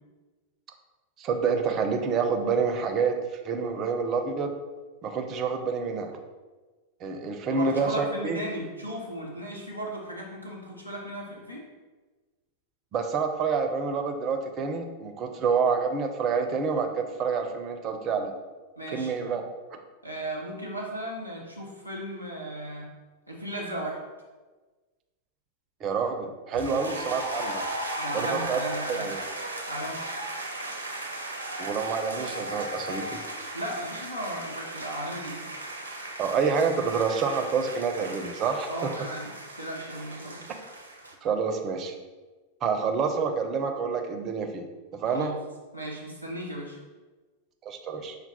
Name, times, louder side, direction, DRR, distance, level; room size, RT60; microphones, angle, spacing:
voice 1, 1.2-3.2 3.4-4.5 5.0-6.1 7.0-8.4 12.9-18.3 18.9-19.4 19.7-19.8 25.8-27.6 28.1-28.6 28.9-29.2 31.6-33.2 36.2-38.9 41.2-42.0 42.6-44.7 44.9-45.3 47.6-48.2, right 5 dB, 30° right, 5 dB, 0.5 m, -28 dB
voice 2, 7.5-11.6 18.8-19.1 20.0-22.9 23.3-24.0 26.7-26.8 28.0-29.1 29.7-30.0 33.5-35.4 38.7-39.3 39.6-40.4 45.1-45.4 45.7-46.8, right 1 dB, 90° left, -3 dB, 0.8 m, -36 dB
sound 1, 26.5-41.1, right 2 dB, 80° right, 0.6 m, -36 dB
5.6 x 2.0 x 4.2 m, 1.3 s
figure-of-eight pair, 90°, 0 cm